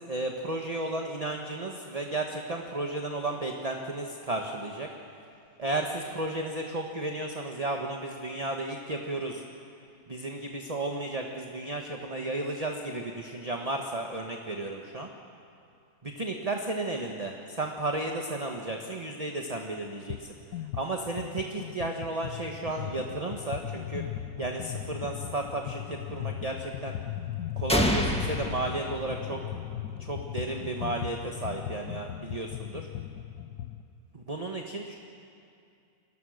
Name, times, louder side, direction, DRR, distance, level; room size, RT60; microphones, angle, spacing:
voice 1, 0.0-4.9 5.6-9.4 10.1-15.1 16.0-20.3 20.7-24.0 24.4-26.9 27.6-29.4 30.0-32.9 34.1-35.0, right 2 dB, 25° right, 2 dB, 1.2 m, -33 dB
sound 1, 20.1-20.3 20.5-33.8, left 11 dB, 70° left, 1.3 m, -38 dB
sound 2, 27.7-29.6, equal, 5° left, 1.6 m, -28 dB
29.0 x 22.0 x 6.5 m, 2.5 s
omnidirectional pair, 1.9 m